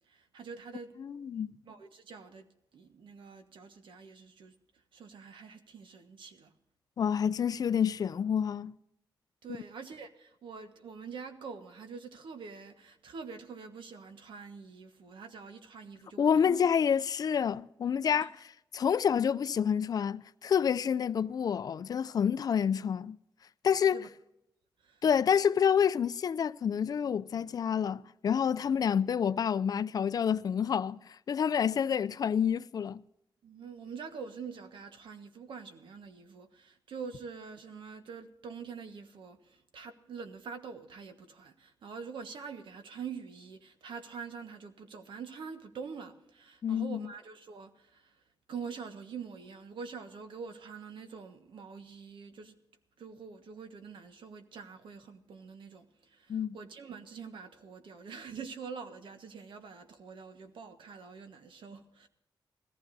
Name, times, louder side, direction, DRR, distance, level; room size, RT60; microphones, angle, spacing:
voice 1, 0.1-1.0 1.6-2.5 2.7-6.5 9.4-16.6 18.1-18.3 23.9-24.1 24.8-25.0 33.4-48.2 48.5-52.6 53.0-62.1, right 5 dB, 85° right, 1.3 m, -45 dB
voice 2, 1.0-1.5 7.0-8.7 16.2-18.3 18.7-23.2 23.6-24.0 25.0-33.0 46.6-47.0 56.3-56.6, left 7 dB, 50° left, 0.4 m, -28 dB
20.0 x 14.5 x 2.7 m
wide cardioid pair, 170°, 8 cm